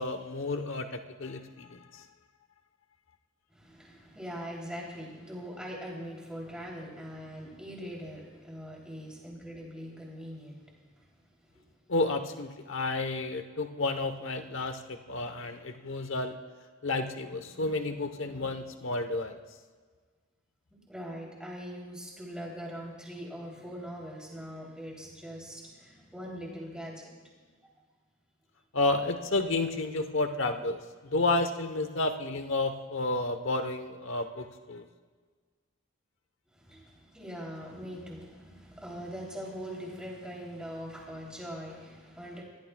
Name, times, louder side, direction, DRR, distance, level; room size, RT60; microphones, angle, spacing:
voice 1, 0.0-2.0 11.9-16.4 16.8-19.4 28.7-34.8, left 2 dB, 70° left, 7 dB, 1.0 m, -31 dB
voice 2, 3.5-10.6 10.9-11.1 11.6-11.7 20.7-27.5 36.5-42.4, equal, 5° right, -2 dB, 3.1 m, -42 dB
23.0 x 17.0 x 2.3 m, 1.5 s
head